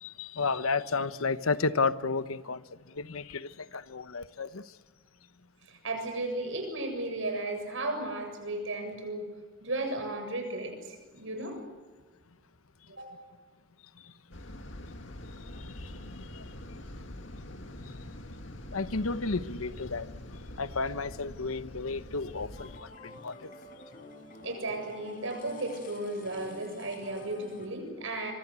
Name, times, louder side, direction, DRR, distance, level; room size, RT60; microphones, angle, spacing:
voice 1, 0.0-4.6 15.6-16.4 18.7-20.1 20.6-23.5, left 4 dB, 85° left, 1.0 m, -32 dB
voice 2, 5.7-9.3 9.6-11.6 12.9-13.1 24.4-28.3, right 2 dB, 65° right, 7.6 m, -35 dB
sound 1, 14.3-22.8, left 1 dB, 60° left, 2.2 m, -44 dB
sound 2, 22.6-27.7, left 2 dB, 40° left, 5.3 m, -49 dB
26.0 x 23.5 x 8.4 m
head